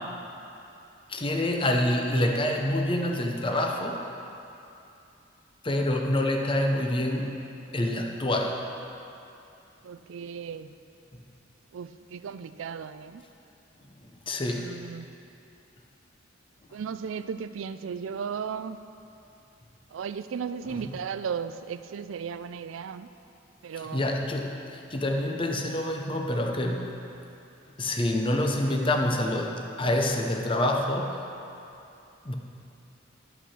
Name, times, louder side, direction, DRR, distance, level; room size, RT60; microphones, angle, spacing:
voice 1, 1.1-4.0 5.6-7.4 7.7-8.5 14.3-14.6 20.7-20.8 23.9-26.8 27.8-29.5 29.8-31.2 32.3-32.4, left 1 dB, 25° left, 2 dB, 0.7 m, -26 dB
voice 2, 9.8-10.7 11.7-13.2 14.4-15.1 16.7-18.9 19.9-23.1 23.6-24.2, right 6 dB, 80° right, 12 dB, 0.4 m, -36 dB
12.0 x 5.9 x 5.7 m, 2.8 s
head